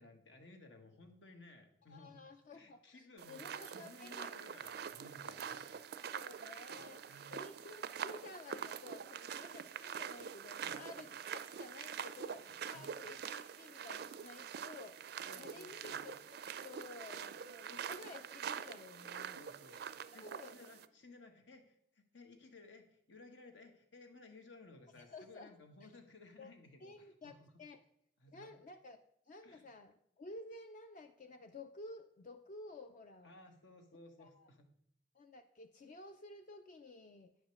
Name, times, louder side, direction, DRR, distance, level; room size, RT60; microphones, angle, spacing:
voice 1, 0.0-2.2 2.5-5.6 6.7-7.4 10.6-10.8 12.2-12.9 15.3-16.2 19.3-19.8 20.1-27.5 28.2-28.5 29.4-29.6 33.2-34.7, left 2 dB, 80° left, 4 dB, 1.3 m, -58 dB
voice 2, 1.9-4.4 5.4-15.1 15.3-16.4 16.6-19.4 20.2-20.7 25.0-25.5 25.8-25.9 26.4-26.5 26.8-27.8 28.3-29.0 29.3-33.3 34.2-34.5 35.1-37.3, left 2 dB, 45° left, 7 dB, 0.4 m, -53 dB
sound 1, 3.2-20.9, right 7 dB, 60° right, 0.4 m, -45 dB
9.3 x 5.1 x 6.3 m, 0.72 s
head